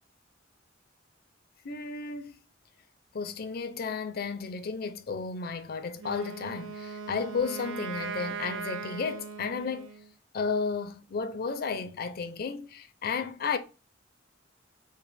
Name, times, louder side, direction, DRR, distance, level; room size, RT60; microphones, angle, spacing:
voice 1, 1.6-2.4 3.1-9.9 10.3-13.6, left 5 dB, 50° left, 0.5 m, -33 dB
Wind instrument woodwind instrument, 6.0-10.1, right 5 dB, 90° right, 0.5 m, -39 dB
5.1 x 2.1 x 3.3 m
head